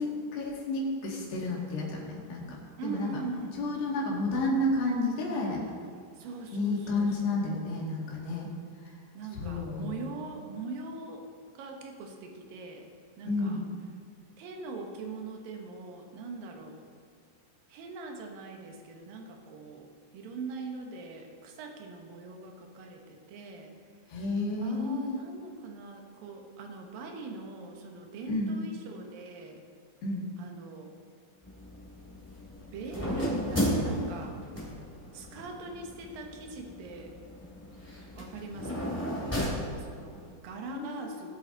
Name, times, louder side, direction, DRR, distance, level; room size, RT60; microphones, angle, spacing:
voice 1, 0.0-3.2 3.6-5.6 6.5-8.5 9.3-10.0 13.3-13.7 24.1-25.2 28.3-28.6 30.0-30.3 40.7-41.3, left 2 dB, 80° left, -3 dB, 4.5 m, -31 dB
voice 2, 2.8-3.8 5.6-5.7 6.2-7.7 9.1-11.2 11.6-12.9 13.2-13.6 14.4-16.8 17.7-23.7 24.6-29.6 30.4-30.9 32.6-34.4 35.1-37.1 38.2-39.0 39.4-41.3, right 3 dB, 65° right, 2 dB, 2.7 m, -42 dB
sound 1, 31.4-40.3, equal, 5° left, 2.2 m, -35 dB
20.0 x 8.1 x 4.0 m, 2.2 s
omnidirectional pair, 4.9 m